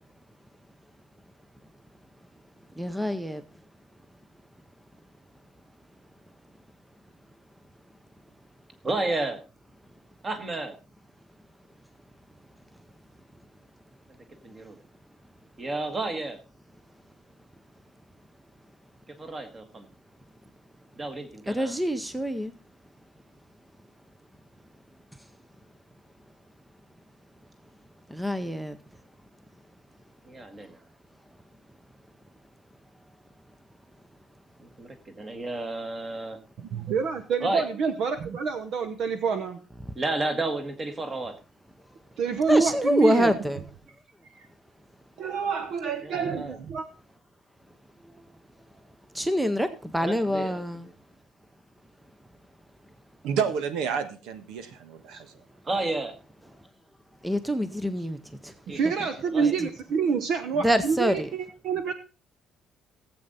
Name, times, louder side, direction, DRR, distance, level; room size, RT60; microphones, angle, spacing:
voice 1, 2.8-3.4 21.5-22.5 28.1-28.8 42.5-43.6 49.1-50.9 57.2-58.2 58.4-58.5 60.6-61.3, equal, 5° right, 11 dB, 0.6 m, -25 dB
voice 2, 8.8-9.4 10.2-10.7 14.4-14.8 15.6-16.4 19.2-19.9 20.9-21.8 30.2-30.8 34.6-36.4 37.4-37.6 39.9-41.3 46.0-46.6 50.0-50.9 55.1-55.2 55.6-56.1 58.7-58.8 59.3-59.6, right 2 dB, 20° right, 7 dB, 1.7 m, -32 dB
voice 3, 36.7-39.6 42.2-43.4 44.3-44.5 45.2-46.9 58.7-61.9, right 5 dB, 50° right, 9 dB, 0.9 m, -27 dB
voice 4, 53.2-55.3 55.7-55.8, right 7 dB, 85° right, 10 dB, 1.5 m, -30 dB
17.5 x 7.9 x 4.1 m, 0.35 s
cardioid pair, 170°, 0 cm